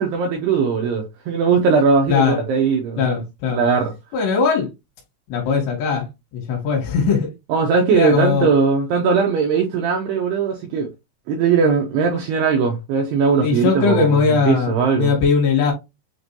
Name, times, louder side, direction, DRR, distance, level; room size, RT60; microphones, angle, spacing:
voice 1, 0.0-3.0 3.5-3.9 7.5-10.9 11.3-14.2 14.5-15.1, right 5 dB, 85° right, 2.4 m, -19 dB
voice 2, 2.1-2.4 3.0-3.6 4.1-4.7 5.3-6.1 6.3-7.3 7.9-8.5 13.4-15.7, left 5 dB, 70° left, 3.3 m, -19 dB
7.6 x 2.6 x 2.7 m
omnidirectional pair, 5.7 m